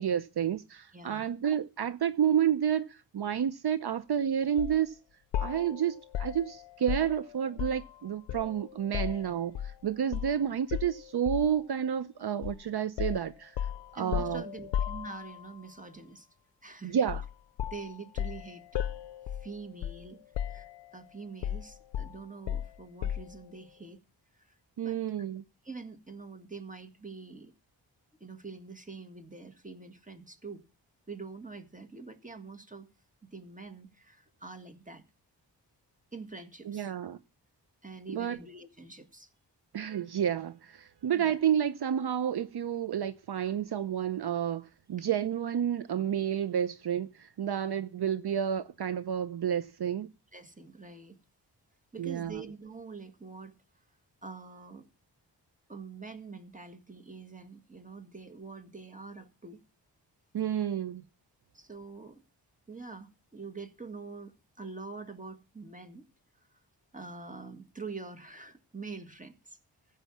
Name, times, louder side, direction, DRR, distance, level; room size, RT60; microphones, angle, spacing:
voice 1, 0.0-5.0 5.4-13.6 13.9-14.4 16.9-17.2 24.8-25.4 36.7-37.2 38.1-38.4 39.7-50.1 52.0-52.4 60.3-61.0, right 9 dB, 60° right, 0.7 m, -30 dB
voice 2, 0.9-1.3 14.0-16.3 16.6-17.0 17.7-18.7 19.3-24.0 24.3-24.5 24.8-25.0 25.6-27.5 28.2-30.6 31.1-32.9 33.2-35.0 36.1-36.9 37.8-39.3 41.1-41.4 50.3-51.2 51.9-53.5 54.2-54.9 55.7-59.6 61.5-62.2 62.7-66.1 66.4-66.6 66.9-69.6, right 4 dB, 20° right, 1.8 m, -45 dB
sound 1, 4.6-4.8 5.3-7.9 8.3-9.8 10.1-10.3 10.7-11.6 12.4-12.6 13.0-15.5 17.1-17.3 17.6-20.1 20.3-21.0 21.4-23.4, left 10 dB, 75° left, 0.6 m, -35 dB
15.0 x 5.6 x 7.2 m
cardioid pair, 55°, 43 cm